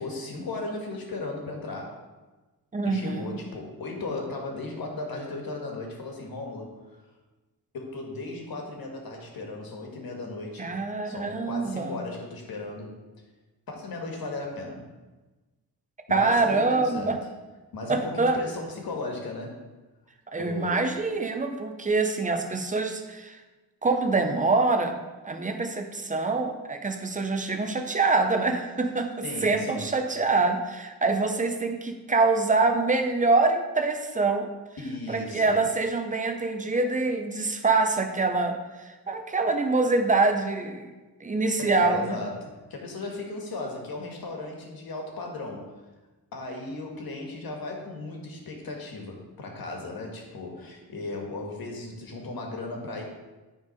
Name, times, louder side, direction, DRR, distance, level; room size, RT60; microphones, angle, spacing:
voice 1, 0.0-2.0 2.8-7.0 7.7-10.7 11.0-13.0 13.7-14.9 16.1-17.3 17.7-19.6 20.4-20.9 29.2-29.8 34.8-35.6 41.6-45.7 46.3-53.0, left 2 dB, 65° left, 1 dB, 1.6 m, -36 dB
voice 2, 2.7-3.4 10.6-12.0 16.1-17.2 17.9-18.4 20.3-23.4 23.8-34.5 35.1-38.6 39.1-40.9 41.2-42.2, right 3 dB, 20° right, 5 dB, 0.6 m, -25 dB
9.1 x 3.7 x 5.3 m, 1.2 s
wide cardioid pair, 165°, 38 cm